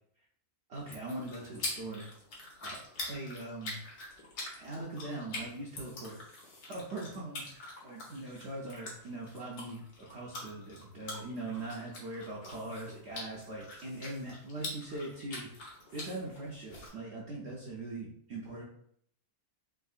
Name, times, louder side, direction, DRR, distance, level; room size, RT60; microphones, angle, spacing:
sound 1, 0.7-16.9, left 2 dB, 90° left, 1.5 m, -45 dB
voice 1, 0.7-2.1 2.6-3.8 4.6-6.2 6.7-18.6, right 2 dB, 60° right, -4 dB, 0.7 m, -41 dB
3.5 x 3.0 x 2.4 m, 0.68 s
omnidirectional pair, 1.6 m